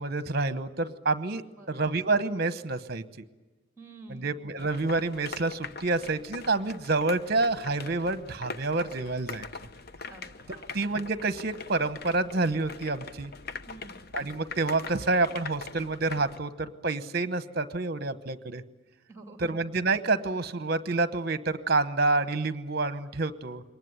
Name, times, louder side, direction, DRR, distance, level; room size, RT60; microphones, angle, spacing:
voice 1, 0.0-3.0 4.1-9.5 10.7-13.3 14.1-18.6 19.4-23.6, right 3 dB, 50° right, 12 dB, 1.1 m, -28 dB
voice 2, 1.4-1.8 3.8-4.4 10.1-10.7 13.7-14.0 19.1-19.6, right 2 dB, 15° right, 4 dB, 2.7 m, -49 dB
sound 1, 4.6-16.4, left 4 dB, 50° left, 0.8 m, -42 dB
23.0 x 19.5 x 9.7 m, 1.2 s
head